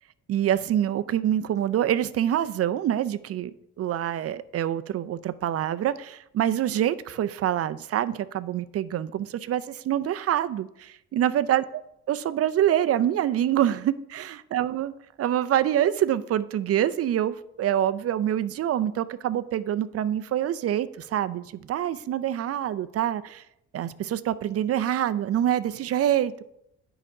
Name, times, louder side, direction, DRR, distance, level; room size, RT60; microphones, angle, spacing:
voice 1, 0.3-3.5 3.8-11.6 12.1-14.9 15.2-23.4 23.7-26.4, right 11 dB, 50° right, 0.4 m, -26 dB
7.5 x 4.9 x 5.3 m
cardioid pair, 90°, 30 cm